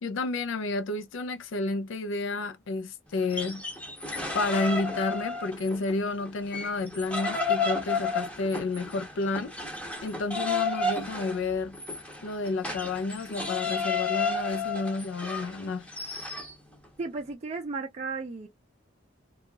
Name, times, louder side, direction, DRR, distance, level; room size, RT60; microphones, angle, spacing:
voice 1, 0.0-3.6 4.3-9.5 10.0-11.8 12.2-15.9, left 3 dB, 75° left, 0.4 m, -31 dB
sound 1, 3.2-5.9 6.3-16.5, left 4 dB, 5° left, 0.7 m, -32 dB
voice 2, 17.0-18.5, right 4 dB, 35° right, 0.4 m, -34 dB
2.7 x 2.3 x 2.7 m
head